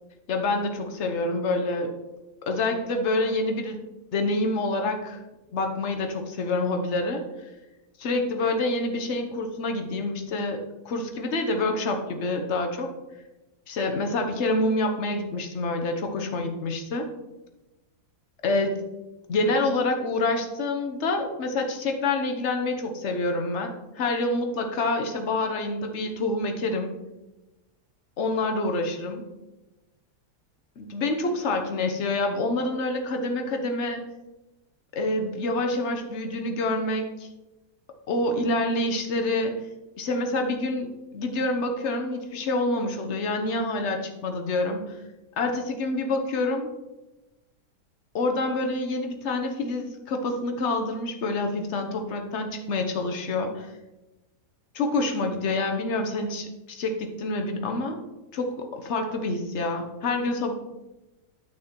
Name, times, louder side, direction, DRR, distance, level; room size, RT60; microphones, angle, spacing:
voice 1, 0.3-1.9 2.4-3.8 4.1-5.2 5.5-7.2 8.0-12.9 13.7-17.1 18.4-18.9 19.3-27.0 28.2-29.2 30.8-34.0 34.9-37.3 38.1-39.5 40.0-44.8 45.4-46.7 48.1-53.7 54.7-58.0 58.3-60.5, left 2 dB, 50° left, 4 dB, 1.2 m, -27 dB
9.3 x 6.2 x 4.4 m, 1.1 s
omnidirectional pair, 1.8 m